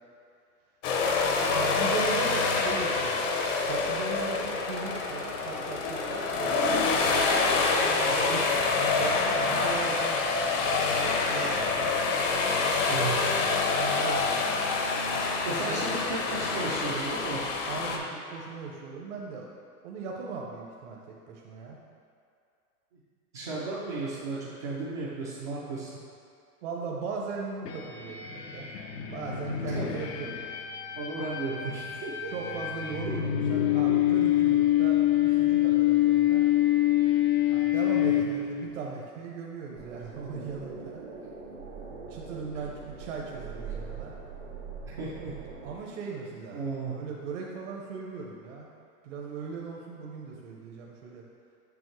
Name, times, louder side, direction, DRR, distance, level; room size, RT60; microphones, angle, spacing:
sound 1, 0.8-18.0, left 4 dB, 50° left, 0.9 m, -27 dB
voice 1, 1.0-3.3 3.7-7.4 7.7-11.9 13.7-14.6 15.7-15.8 17.7-19.5 19.8-21.8 26.6-28.7 29.1-30.4 32.3-36.4 37.5-41.0 42.1-44.1 45.6-46.6 46.9-48.7 49.0-51.2, right 5 dB, 50° right, -2 dB, 0.8 m, -38 dB
voice 2, 8.0-8.4 12.9-13.3 15.4-17.6 23.3-25.9 29.6-30.0 31.0-32.5 43.7-43.8 44.9-45.3 46.5-47.0, right 3 dB, 20° right, -9 dB, 0.4 m, -34 dB
sound 2, 27.7-38.7, left 13 dB, 80° left, 0.8 m, -26 dB
sound 3, 39.7-45.7, right 5 dB, 80° right, 1.3 m, -42 dB
7.0 x 5.6 x 3.1 m, 2.3 s
hypercardioid pair, 145°, 47 cm